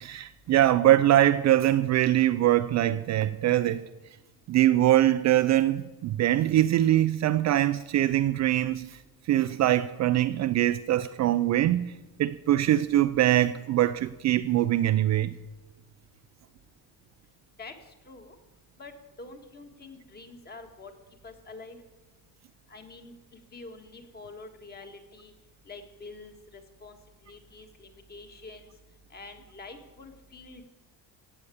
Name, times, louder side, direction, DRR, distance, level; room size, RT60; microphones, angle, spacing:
voice 1, 0.0-3.9 4.5-9.0 9.3-11.9 12.2-15.3, right 13 dB, 45° right, 0.4 m, -23 dB
voice 2, 19.2-20.9 21.2-21.8 22.7-23.1 23.5-25.3 25.6-27.0 27.2-28.7 29.1-30.6, left 3 dB, 25° left, 1.7 m, -46 dB
16.0 x 8.1 x 8.5 m
cardioid pair, 155°, 40 cm